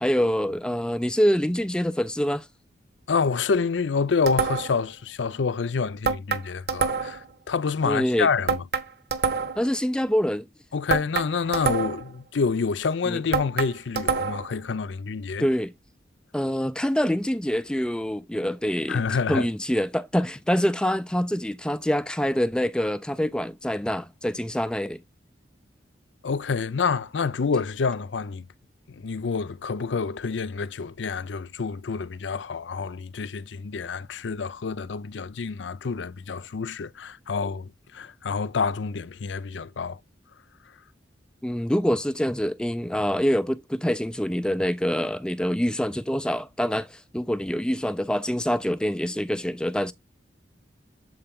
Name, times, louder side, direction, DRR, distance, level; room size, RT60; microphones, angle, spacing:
voice 1, 0.0-2.5 7.8-8.3 9.6-10.5 13.1-13.2 15.4-15.7 16.3-19.0 19.3-25.0 41.4-49.9, equal, 5° left, 0.3 m, -25 dB
voice 2, 3.1-8.6 10.7-15.5 18.9-19.5 26.2-28.4 28.9-40.0, left 5 dB, 90° left, 0.5 m, -28 dB
sound 1, 4.3-4.9 6.0-7.3 8.5-9.7 10.9-12.1 13.3-14.5, right 5 dB, 60° right, 0.9 m, -27 dB
7.7 x 4.3 x 3.7 m
head